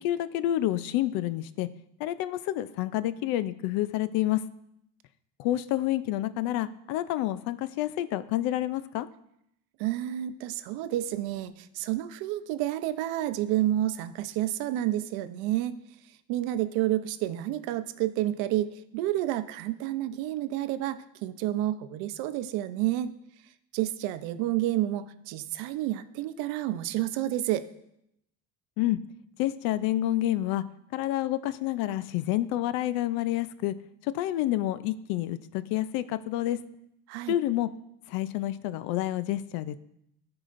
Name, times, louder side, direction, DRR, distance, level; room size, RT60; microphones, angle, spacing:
voice 1, 0.0-1.7 2.0-4.4 5.4-9.1 28.8-29.0 29.4-30.6 30.9-33.7 34.1-36.6 37.3-37.7 38.1-39.8, left 14 dB, 75° left, 14 dB, 0.5 m, -28 dB
voice 2, 9.8-15.7 16.3-23.1 23.7-27.7 37.1-37.4, right 14 dB, 90° right, 11 dB, 0.6 m, -30 dB
14.0 x 4.8 x 2.5 m, 0.79 s
cardioid pair, 170°, 36 cm